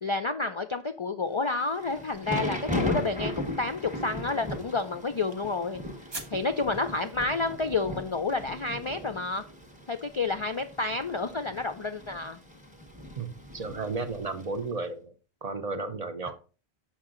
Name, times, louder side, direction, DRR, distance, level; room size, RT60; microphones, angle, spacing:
voice 1, 0.0-5.8 6.3-9.4 9.9-12.4, left 3 dB, 45° left, 0.4 m, -30 dB
Thunder / Rain, 1.5-14.6, left 1 dB, 10° right, 1.1 m, -37 dB
sound 1, 4.3-7.9, right 2 dB, 25° right, 0.9 m, -47 dB
voice 2, 13.2-15.1 15.4-16.4, right 3 dB, 45° right, 0.6 m, -33 dB
7.3 x 5.9 x 3.7 m
omnidirectional pair, 1.1 m